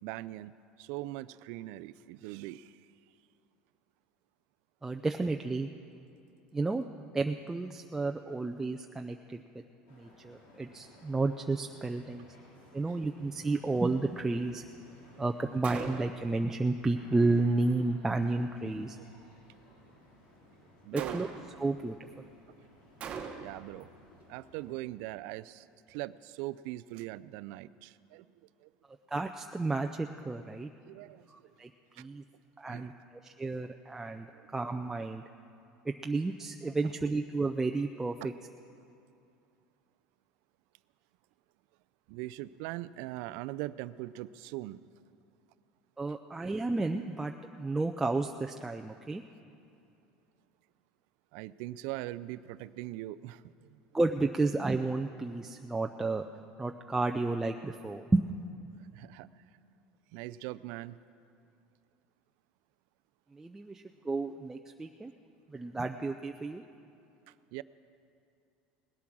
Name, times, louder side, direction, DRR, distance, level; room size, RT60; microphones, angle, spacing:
voice 1, 0.0-0.5 0.8-2.9 12.9-13.0 18.9-19.0 20.8-21.2 23.4-23.9 24.3-28.3 28.6-28.7 30.8-31.5 32.0-32.1 32.7-32.9 34.3-34.5 38.2-38.3 42.1-44.8 51.3-53.8 58.9-59.3 60.1-61.0 67.3-67.6, right 16 dB, 70° right, 17 dB, 0.4 m, -41 dB
voice 2, 4.8-5.7 6.5-6.8 7.1-9.4 9.9-12.3 12.7-14.6 15.2-19.0 20.9-21.3 21.6-22.2 29.1-30.7 31.3-32.2 32.6-32.9 33.2-34.3 34.5-35.2 35.9-38.3 46.0-49.2 53.9-56.2 56.6-58.3 63.3-65.1 65.5-66.6, right 3 dB, 10° right, 3 dB, 0.4 m, -32 dB
sound 1, 9.9-24.8, left 1 dB, 80° left, 3.8 m, -58 dB
Gunshot gunfire, 15.6-16.3 21.0-21.6 23.0-23.7, right 6 dB, 35° right, 1.1 m, -40 dB
19.5 x 8.4 x 6.1 m, 2.6 s
supercardioid pair, 120°, 4 cm